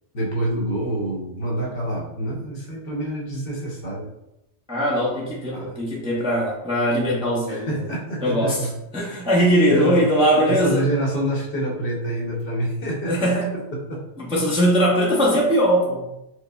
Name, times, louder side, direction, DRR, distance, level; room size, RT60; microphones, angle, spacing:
voice 1, 0.1-4.1 5.5-5.7 7.5-8.7 9.7-10.1 10.5-13.3 13.9-14.0, right 1 dB, 55° left, -3 dB, 1.0 m, -27 dB
voice 2, 4.7-7.7 8.2-10.9 13.1-13.6 14.2-16.1, equal, 5° right, -5 dB, 0.5 m, -20 dB
4.8 x 2.1 x 2.3 m, 0.88 s
omnidirectional pair, 1.2 m